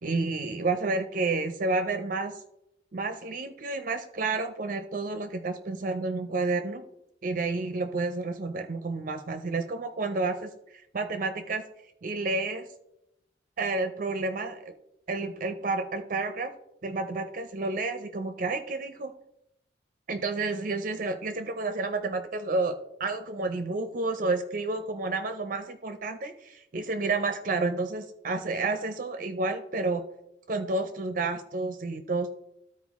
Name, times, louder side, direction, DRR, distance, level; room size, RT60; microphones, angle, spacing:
voice 1, 0.0-2.4 2.9-6.8 7.2-11.6 12.0-12.7 13.6-14.7 15.1-16.5 16.8-19.1 20.1-30.0 30.5-32.3, right 3 dB, 50° right, 8 dB, 0.5 m, -30 dB
13.0 x 4.4 x 3.5 m, 0.83 s
head